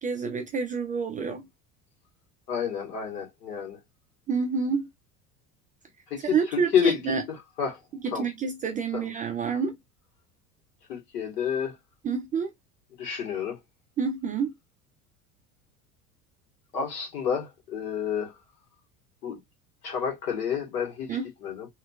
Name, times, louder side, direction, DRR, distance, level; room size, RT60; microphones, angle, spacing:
voice 1, 0.0-1.5 4.3-4.9 6.2-7.2 8.0-9.8 12.0-12.5 14.0-14.5 21.1-21.3, right 5 dB, 20° right, 0.3 m, -28 dB
voice 2, 2.5-3.8 6.1-7.8 8.1-8.2 8.9-9.1 10.9-11.7 13.0-13.6 16.7-18.3 19.2-19.4 19.8-21.7, left 7 dB, 75° left, 1.6 m, -29 dB
2.9 x 2.7 x 2.2 m
figure-of-eight pair, 70°, 47 cm